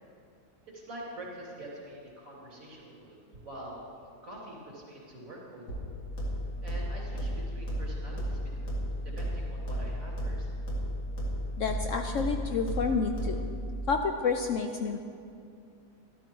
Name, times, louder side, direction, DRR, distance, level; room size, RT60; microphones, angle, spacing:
voice 1, 0.7-3.8 4.2-5.8 6.6-8.8 9.0-10.5, right 1 dB, 60° right, -5 dB, 3.6 m, -45 dB
sound 1, 5.7-13.7, equal, 90° left, 2.9 m, -34 dB
voice 2, 11.6-13.5 13.9-15.0, left 5 dB, 65° left, 5 dB, 0.8 m, -29 dB
12.5 x 12.5 x 4.6 m, 2.4 s
omnidirectional pair, 1.7 m